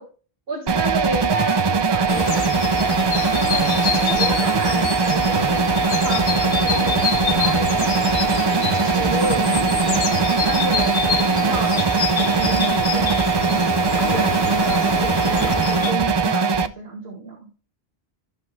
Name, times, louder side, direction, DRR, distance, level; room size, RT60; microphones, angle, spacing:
voice 1, 0.5-3.7 4.0-8.5 8.9-11.7 12.2-13.8 14.1-17.4, right 3 dB, 70° right, -2 dB, 2.0 m, -30 dB
sound 1, 0.7-16.7, right 5 dB, 45° right, 0.3 m, -20 dB
sound 2, 2.1-15.9, left 7 dB, 85° left, 1.0 m, -26 dB
14.5 x 5.8 x 2.2 m, 0.37 s
omnidirectional pair, 1.0 m